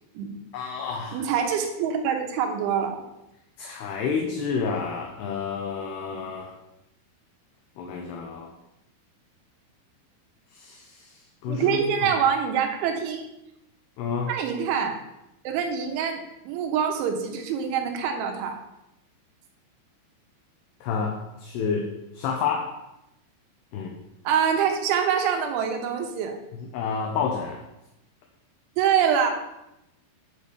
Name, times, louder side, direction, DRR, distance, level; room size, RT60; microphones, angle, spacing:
voice 1, 0.5-1.2 3.6-6.6 7.8-8.5 10.5-12.1 14.0-14.3 20.8-22.8 23.7-23.9 26.6-27.6, left 5 dB, 75° left, 2 dB, 2.7 m, -30 dB
voice 2, 1.1-3.0 11.5-13.3 14.3-15.0 15.5-18.6 24.3-26.4 28.8-29.3, right 7 dB, 85° right, 4 dB, 3.5 m, -25 dB
9.1 x 5.0 x 6.8 m, 0.89 s
omnidirectional pair, 5.4 m